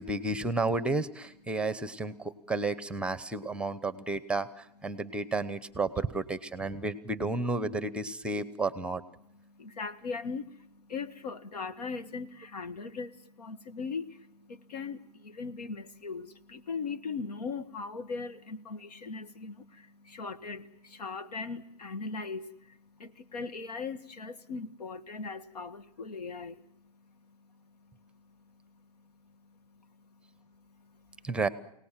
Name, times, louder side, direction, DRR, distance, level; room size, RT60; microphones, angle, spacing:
voice 1, 0.0-9.0 31.2-31.5, right 3 dB, 5° right, 15 dB, 0.9 m, -32 dB
voice 2, 9.6-10.4 10.9-13.1 13.4-14.1 14.7-15.0 15.4-19.5 20.1-20.6 21.0-22.4 23.0-26.5, left 4 dB, 85° left, 12 dB, 1.6 m, -38 dB
28.5 x 18.5 x 7.5 m, 0.79 s
hypercardioid pair, 140°, 20 cm